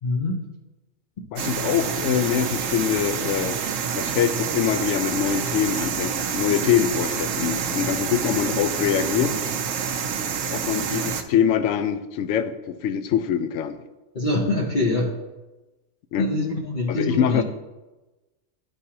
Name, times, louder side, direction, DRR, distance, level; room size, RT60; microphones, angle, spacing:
voice 1, 0.0-0.5 14.1-15.2 16.2-17.4, left 2 dB, 45° left, -1 dB, 0.8 m, -24 dB
voice 2, 1.3-3.6 3.9-9.4 10.5-13.8 16.1-16.3 16.9-17.4, left 8 dB, 70° left, 11 dB, 0.9 m, -24 dB
sound 1, 1.4-11.2, right 7 dB, 85° right, 1.0 m, -27 dB
11.0 x 4.8 x 2.8 m, 1.1 s
omnidirectional pair, 1.3 m